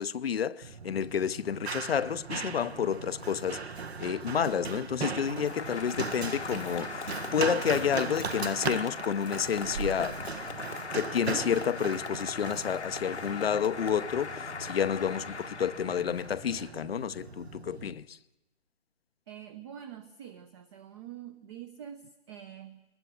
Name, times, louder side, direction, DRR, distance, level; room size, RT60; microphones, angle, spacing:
voice 1, 0.0-10.2 10.9-18.2, left 8 dB, 65° left, 0.8 m, -30 dB
Run, 0.6-17.9, right 5 dB, 70° right, 1.7 m, -38 dB
Applause, 5.2-16.7, left 5 dB, 85° left, 1.4 m, -40 dB
voice 2, 19.3-22.8, right 9 dB, 25° right, 0.8 m, -46 dB
23.0 x 20.5 x 8.1 m
figure-of-eight pair, 145°, 33 cm